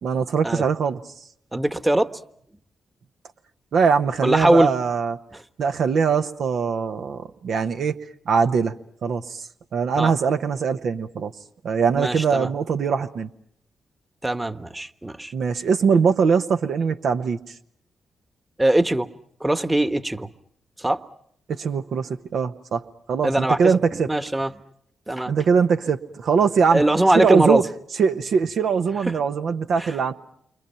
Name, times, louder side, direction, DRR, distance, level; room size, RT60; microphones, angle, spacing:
voice 1, 0.0-1.0 3.7-5.2 5.6-8.0 8.3-8.8 9.0-9.4 9.7-11.3 11.6-13.3 15.3-17.4 21.5-22.8 23.1-24.1 25.3-26.8 27.1-27.6 28.0-30.1, right 6 dB, 65° right, 7 dB, 1.0 m, -21 dB
voice 2, 1.5-2.1 4.2-4.7 10.0-10.1 12.0-12.5 14.2-15.3 18.6-19.1 19.4-20.3 20.8-21.0 23.2-23.8 24.1-24.5 25.1-25.3 26.7-27.6 29.8-29.9, right 1 dB, 15° right, 11 dB, 1.3 m, -21 dB
29.0 x 25.0 x 5.7 m, 0.69 s
hypercardioid pair, 40°, 0 cm